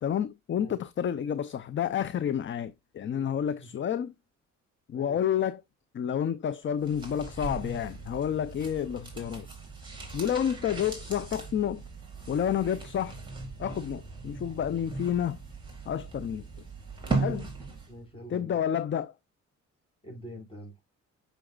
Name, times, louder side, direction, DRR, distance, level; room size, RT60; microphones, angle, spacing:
voice 1, 0.0-4.1 4.9-5.6 5.9-9.5 10.1-11.8 12.3-13.2 13.6-15.4 15.9-16.5 17.2-17.5 18.3-19.1, left 9 dB, 40° left, 0.5 m, -30 dB
voice 2, 3.1-3.7 4.9-5.2 17.1-17.4 17.9-18.6 20.0-20.7, equal, 20° left, 4.9 m, -45 dB
sound 1, 6.8-18.0 18.3-18.4, right 3 dB, 15° right, 4.4 m, -38 dB
7.8 x 6.4 x 2.4 m
cardioid pair, 90°, 30 cm